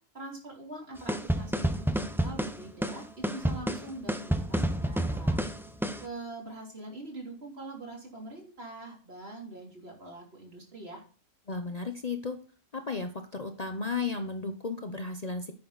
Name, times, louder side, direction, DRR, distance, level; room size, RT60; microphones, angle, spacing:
voice 1, 0.1-5.4 6.0-11.0, right 2 dB, 50° right, 0 dB, 3.4 m, -43 dB
sound 1, 1.1-6.1, right 1 dB, ahead, 0.6 m, -29 dB
voice 2, 11.5-12.4 12.7-15.5, left 4 dB, 35° left, 6 dB, 0.8 m, -34 dB
10.5 x 8.7 x 4.0 m, 0.40 s
omnidirectional pair, 1.3 m